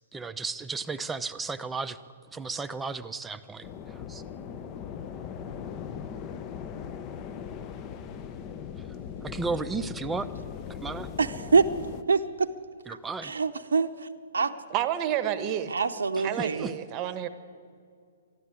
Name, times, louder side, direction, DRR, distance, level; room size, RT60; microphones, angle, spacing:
voice 1, 0.1-2.0 2.3-3.7 4.1-4.2 9.2-10.3 10.8-11.1 12.9-13.4 16.4-16.7, right 4 dB, 10° right, 0.6 m, -33 dB
sound 1, 3.6-12.0, left 7 dB, 30° left, 0.7 m, -39 dB
voice 2, 11.2-11.7 12.1-12.5 13.2-14.1 14.3-14.5 15.7-16.7, right 4 dB, 80° right, 0.6 m, -25 dB
voice 3, 14.7-15.7 16.2-17.3, right 11 dB, 30° right, 1.0 m, -29 dB
13.0 x 11.5 x 9.5 m
hypercardioid pair, 130°, 0 cm